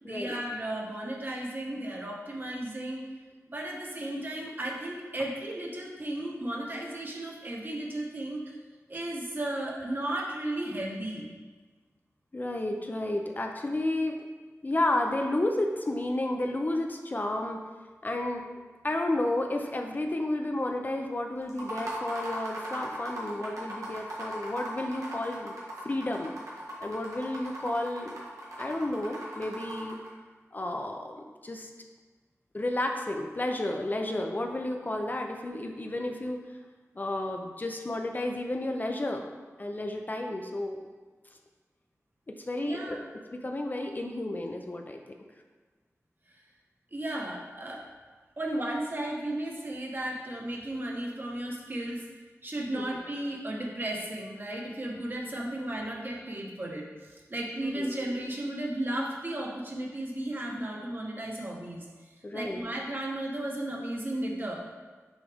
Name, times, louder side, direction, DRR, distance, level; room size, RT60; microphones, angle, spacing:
voice 1, 0.0-3.0 3.5-8.4 8.9-11.3 42.6-43.1 46.9-47.8 48.4-52.0 52.4-61.9 62.3-64.6, right 1 dB, 40° right, -2 dB, 1.1 m, -34 dB
voice 2, 12.3-14.2 14.6-17.6 18.0-18.4 18.8-25.5 25.8-26.3 26.8-28.1 28.6-30.0 30.5-31.7 32.5-36.4 36.9-39.3 39.6-40.8 42.5-43.0 43.3-45.0 52.7-52.9 57.6-57.9 62.2-62.6, left 1 dB, 35° left, 3 dB, 0.5 m, -31 dB
sound 1, 21.5-30.1, right 1 dB, 80° right, 1.4 m, -38 dB
6.3 x 4.9 x 3.5 m, 1.3 s
wide cardioid pair, 90°, 5 cm